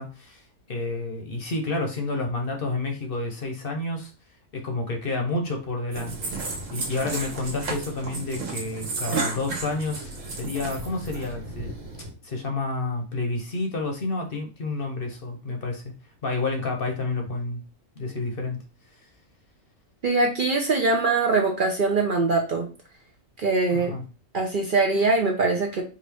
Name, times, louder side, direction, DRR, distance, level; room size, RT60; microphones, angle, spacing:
voice 1, 0.0-4.1 4.5-6.2 6.7-11.7 12.2-15.9 16.2-17.6 18.0-18.6 23.7-24.0, left 2 dB, 50° left, 3 dB, 0.9 m, -29 dB
sound 1, 5.9-12.1, right 3 dB, 70° right, 1.4 m, -33 dB
voice 2, 20.0-22.7 23.4-23.9 24.3-25.8, right 3 dB, 50° right, 1 dB, 0.7 m, -22 dB
4.7 x 2.6 x 3.3 m, 0.34 s
omnidirectional pair, 1.4 m